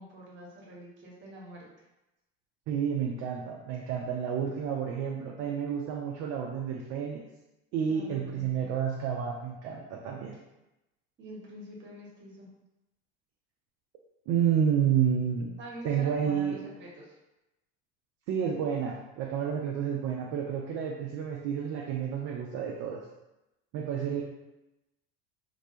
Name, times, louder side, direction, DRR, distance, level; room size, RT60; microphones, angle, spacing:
voice 1, 0.0-1.7 7.8-8.7 11.2-12.5 15.6-17.2, right 1 dB, 35° right, -3 dB, 1.0 m, -46 dB
voice 2, 2.7-7.2 7.7-10.4 14.3-15.6 15.8-16.6 18.3-23.0 23.7-24.2, right 8 dB, 55° right, 0 dB, 0.4 m, -30 dB
2.3 x 2.1 x 2.7 m, 0.96 s
hypercardioid pair, 80°, 32 cm